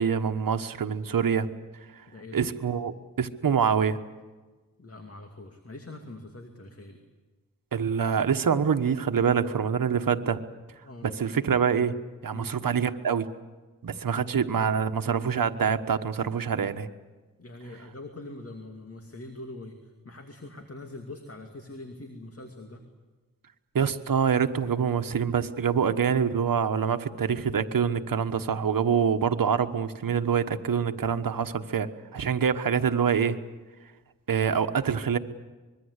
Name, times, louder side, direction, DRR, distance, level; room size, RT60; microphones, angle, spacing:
voice 1, 0.0-1.5 2.3-4.0 7.7-10.4 11.0-12.0 12.2-13.3 13.8-16.9 23.7-33.4 34.3-35.2, right 7 dB, 75° right, 8 dB, 1.3 m, -25 dB
voice 2, 2.1-2.5 4.8-7.0 10.8-11.1 12.3-12.5 17.4-22.8, left 2 dB, 40° left, 4 dB, 2.5 m, -43 dB
25.0 x 22.0 x 8.2 m, 1.3 s
wide cardioid pair, 80°, 34 cm